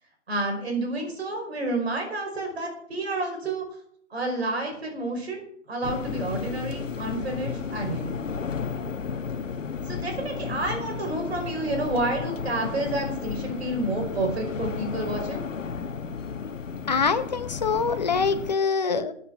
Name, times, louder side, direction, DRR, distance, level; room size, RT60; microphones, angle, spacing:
voice 1, 0.3-3.6 4.1-5.4 5.7-8.2 9.8-15.4, right 2 dB, 55° right, 3 dB, 5.1 m, -29 dB
sound 1, 5.8-18.6, left 6 dB, 85° left, 1.2 m, -33 dB
voice 2, 16.9-19.1, left 5 dB, 35° left, 10 dB, 0.9 m, -24 dB
14.0 x 8.2 x 5.8 m, 0.65 s
hypercardioid pair, 170°, 37 cm